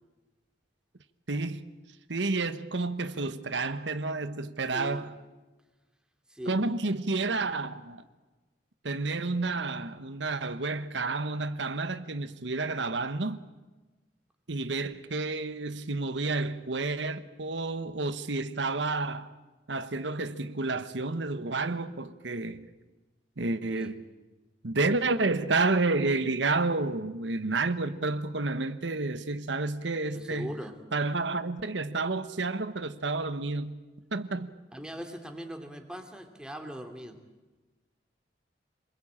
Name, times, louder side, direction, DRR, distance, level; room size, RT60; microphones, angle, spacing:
voice 1, 1.3-1.7 2.1-5.1 6.5-8.0 8.8-13.4 14.5-19.3 19.7-22.7 23.4-24.0 24.6-30.5 30.9-33.8 34.1-34.5, right 3 dB, 85° right, 1.2 m, -30 dB
voice 2, 4.7-5.1 6.3-6.6 23.7-23.9 30.1-30.8 34.7-37.2, equal, 5° right, 2.7 m, -40 dB
27.5 x 21.0 x 8.8 m
head